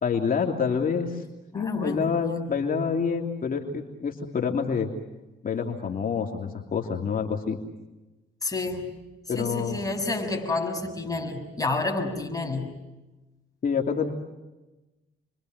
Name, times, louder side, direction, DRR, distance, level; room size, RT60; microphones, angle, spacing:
voice 1, 0.0-1.2 1.5-4.9 5.4-7.6 9.3-9.8 13.6-14.1, left 6 dB, 45° left, 2 dB, 2.9 m, -27 dB
voice 2, 1.5-2.4 8.4-8.9 9.3-12.8, left 2 dB, 15° left, 3 dB, 6.5 m, -30 dB
29.5 x 24.0 x 8.0 m, 1.1 s
cardioid pair, 90°, 20 cm